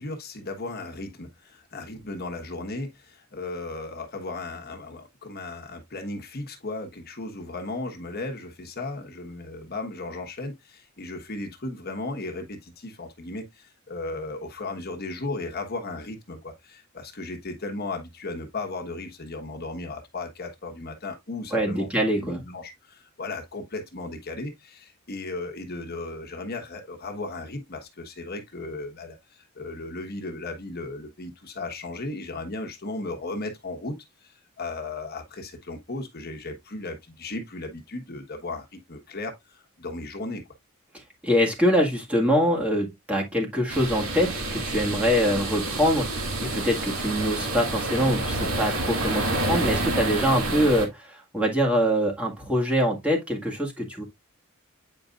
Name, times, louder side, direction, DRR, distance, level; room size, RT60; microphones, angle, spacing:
voice 1, 0.0-21.9 22.1-40.4, left 2 dB, 45° left, 1.3 m, -36 dB
voice 2, 21.5-22.4 41.2-54.0, equal, 5° right, 1.7 m, -24 dB
sound 1, 43.7-50.9, right 2 dB, 75° right, 2.3 m, -28 dB
8.7 x 5.2 x 2.4 m
head